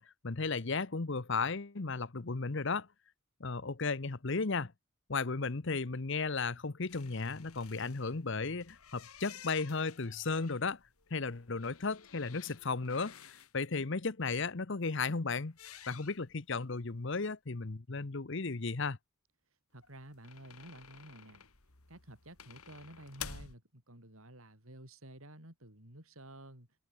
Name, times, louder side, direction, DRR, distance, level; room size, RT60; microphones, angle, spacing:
voice 1, 0.0-2.9 3.4-4.7 5.1-10.8 11.1-13.2 13.5-15.6 15.9-19.0, left 4 dB, 55° left, 0.9 m, -35 dB
sound 1, 6.9-13.5 15.5-16.6 16.9-17.0 17.2-17.3 19.8-23.6, left 8 dB, 90° left, 2.7 m, -52 dB
voice 2, 19.7-21.4 21.9-26.7, right 1 dB, 75° right, 6.6 m, -52 dB
head